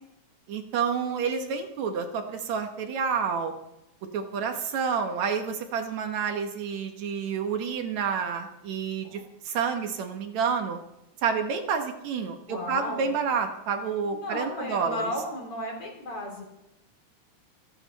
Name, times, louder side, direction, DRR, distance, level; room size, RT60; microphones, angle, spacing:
voice 1, 0.5-3.5 4.1-9.2 9.5-10.8 11.2-15.0, right 6 dB, 70° right, 5 dB, 2.5 m, -29 dB
voice 2, 12.5-13.1 14.1-16.4, left 1 dB, 50° left, 1 dB, 4.4 m, -34 dB
28.0 x 9.8 x 4.1 m, 0.87 s
omnidirectional pair, 3.4 m